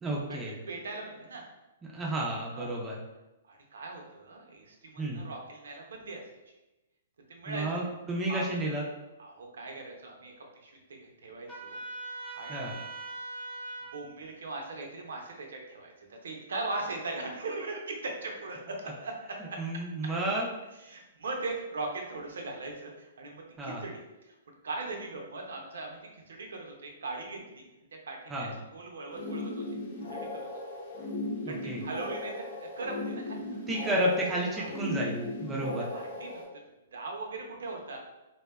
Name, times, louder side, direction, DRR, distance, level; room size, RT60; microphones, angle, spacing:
voice 1, 0.0-0.6 1.9-3.0 5.0-5.2 7.5-8.8 12.5-12.7 19.4-20.5 23.6-23.8 28.3-28.5 31.4-31.8 33.7-35.9, right 1 dB, 15° right, -3 dB, 0.4 m, -31 dB
voice 2, 0.7-1.5 2.5-2.7 3.5-6.2 7.3-7.7 8.3-8.4 9.2-10.3 10.6-11.8 12.4-12.8 13.9-19.6 20.8-23.9 24.3-24.4 24.6-27.7 28.1-29.6 30.1-30.3 31.5-32.3 32.6-33.6 34.6-34.7 35.9-36.4 36.9-38.0, right 3 dB, 80° right, 1 dB, 0.6 m, -39 dB
Trumpet, 11.5-14.0, right 2 dB, 25° left, 0.9 m, -41 dB
sound 1, 29.1-36.4, left 2 dB, 60° left, 0.7 m, -37 dB
2.6 x 2.1 x 2.2 m, 1.0 s
hypercardioid pair, 140°, 0 cm